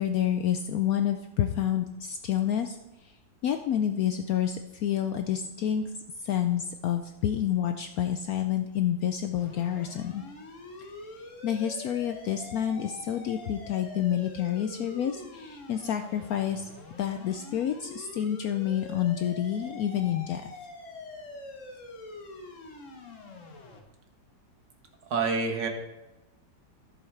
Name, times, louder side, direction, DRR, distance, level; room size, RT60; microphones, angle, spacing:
voice 1, 0.0-2.8 3.4-5.8 6.2-10.2 11.4-16.7 17.0-20.5, left 10 dB, 70° left, 7 dB, 0.8 m, -28 dB
sound 1, 9.4-23.8, left 2 dB, 45° left, 1.4 m, -45 dB
voice 2, 25.1-25.7, right 4 dB, 70° right, 4 dB, 1.8 m, -27 dB
14.0 x 7.1 x 3.3 m, 0.98 s
omnidirectional pair, 2.0 m